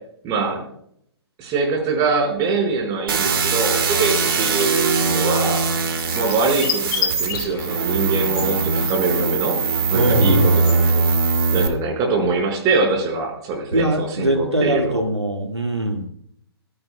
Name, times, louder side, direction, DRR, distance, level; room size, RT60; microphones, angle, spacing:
voice 1, 0.2-0.6 1.4-5.6 6.1-9.6 9.9-11.0 11.5-15.0, right 3 dB, 25° right, 2 dB, 5.1 m, -23 dB
sound 1, 3.1-11.7, right 4 dB, 55° right, 2.4 m, -21 dB
sound 2, 3.6-10.9, left 9 dB, 25° left, 3.8 m, -33 dB
voice 2, 9.9-10.5 13.7-16.1, right 1 dB, 90° right, 4 dB, 1.8 m, -21 dB
25.5 x 11.0 x 2.2 m, 0.67 s
figure-of-eight pair, 125°, 14 cm